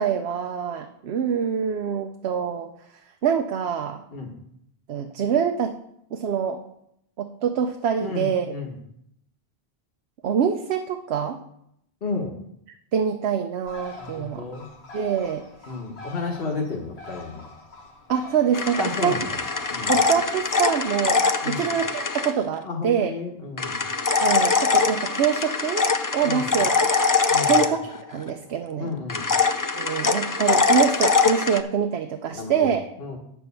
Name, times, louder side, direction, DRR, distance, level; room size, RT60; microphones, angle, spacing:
voice 1, 0.0-2.7 3.2-4.0 4.9-5.8 6.1-6.6 7.2-8.5 10.2-11.4 12.9-14.4 14.9-15.4 18.1-19.2 19.9-23.1 24.2-25.9 26.1-26.7 27.4-27.8 28.1-28.9 29.7-32.8, right 7 dB, 85° right, 6 dB, 0.9 m, -25 dB
voice 2, 8.0-8.7 12.0-12.4 14.0-14.7 15.7-17.4 18.8-19.4 19.7-20.0 21.4-21.7 22.6-23.8 26.2-26.5 27.3-27.6 28.8-29.3 32.3-33.2, left 4 dB, 65° left, 0 dB, 1.4 m, -32 dB
Bird, 13.7-21.1, left 3 dB, 90° left, 1.4 m, -44 dB
sound 1, 18.5-22.3 23.6-28.2 29.1-31.6, left 4 dB, 35° left, 0.3 m, -23 dB
9.9 x 4.5 x 6.8 m, 0.75 s
omnidirectional pair, 1.0 m